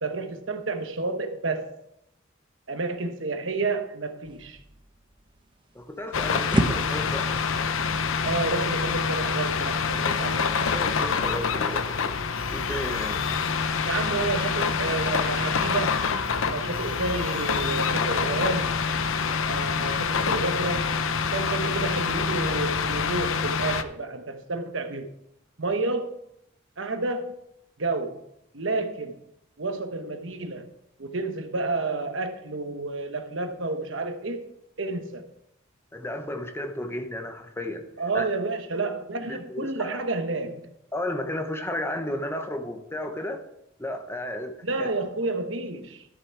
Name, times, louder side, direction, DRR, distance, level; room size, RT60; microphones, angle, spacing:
voice 1, 0.0-1.7 2.7-4.6 8.2-10.5 13.8-16.0 16.4-18.8 19.5-20.9 21.3-25.1 25.6-26.1 26.8-27.4 27.8-28.2 28.5-29.2 29.6-30.7 31.0-34.4 34.8-35.2 38.0-40.7 44.6-46.1, right 3 dB, 70° right, 1.1 m, -30 dB
sound 1, 4.2-11.8, right 1 dB, 25° right, 0.8 m, -34 dB
voice 2, 5.7-7.3 10.0-12.2 12.5-13.2 35.9-37.9 38.1-38.3 39.3-40.0 40.9-43.4 43.8-44.9, left 1 dB, 10° left, 0.9 m, -33 dB
sound 2, 6.1-23.8, left 5 dB, 80° left, 0.6 m, -26 dB
12.5 x 6.8 x 4.6 m
head